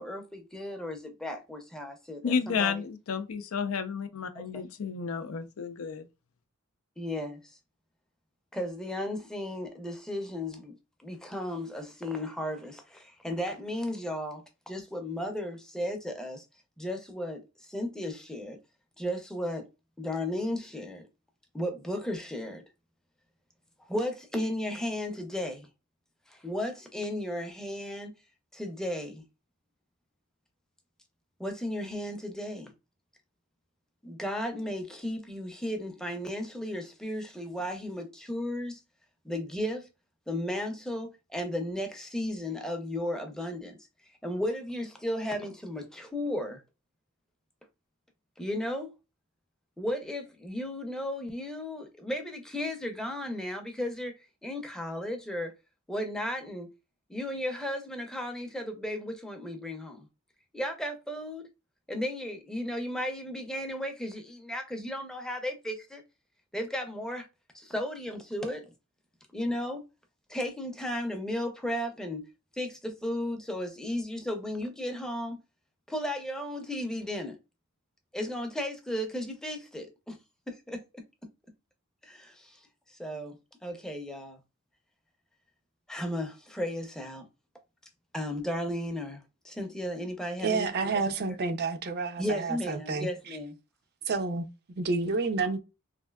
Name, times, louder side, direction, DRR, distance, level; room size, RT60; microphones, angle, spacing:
voice 1, 0.0-2.8 4.5-4.6 7.0-7.4 8.5-10.8 11.0-16.4 16.8-18.6 19.0-19.7 20.0-21.0 21.5-22.6 23.9-25.7 26.3-28.1 28.5-29.2 31.4-32.7 34.0-38.8 39.2-39.9 40.3-43.8 44.2-46.6 48.4-48.9 49.8-55.5 55.9-56.7 57.1-60.1 60.5-61.5 61.9-66.0 66.5-67.3 67.5-68.7 69.3-69.8 70.3-72.2 72.6-75.4 75.9-77.4 78.1-80.2 80.5-81.0 82.0-84.4 85.9-87.3 88.1-91.4 92.2-93.6, left 1 dB, 5° left, 0.5 m, -35 dB
voice 2, 2.2-6.1, left 6 dB, 85° left, 0.4 m, -31 dB
voice 3, 90.4-93.1 94.1-95.6, right 4 dB, 50° right, 0.4 m, -30 dB
3.2 x 2.5 x 2.2 m
head